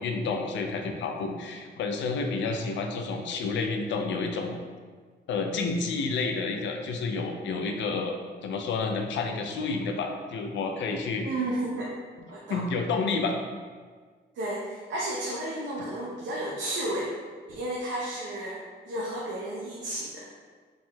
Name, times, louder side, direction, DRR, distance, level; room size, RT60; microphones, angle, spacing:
voice 1, 0.0-4.5 5.3-8.2 8.4-11.3 12.5-13.4, left 4 dB, 85° left, 4 dB, 0.5 m, -30 dB
voice 2, 11.2-11.9 12.3-12.6 14.3-17.1 17.5-20.3, right 1 dB, 80° right, -5 dB, 0.7 m, -32 dB
5.2 x 3.5 x 2.3 m, 1.5 s
cardioid pair, 120°, 19 cm